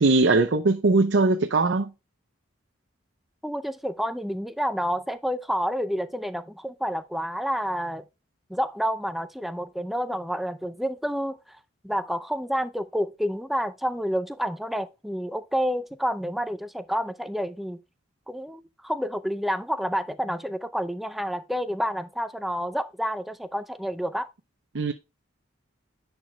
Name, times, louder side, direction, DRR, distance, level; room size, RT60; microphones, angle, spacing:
voice 1, 0.0-1.9 24.7-24.9, right 3 dB, 70° right, 0.6 m, -20 dB
voice 2, 3.4-8.0 8.5-11.6 11.8-17.8 18.3-24.3, equal, ahead, 0.4 m, -29 dB
10.5 x 4.7 x 2.2 m
head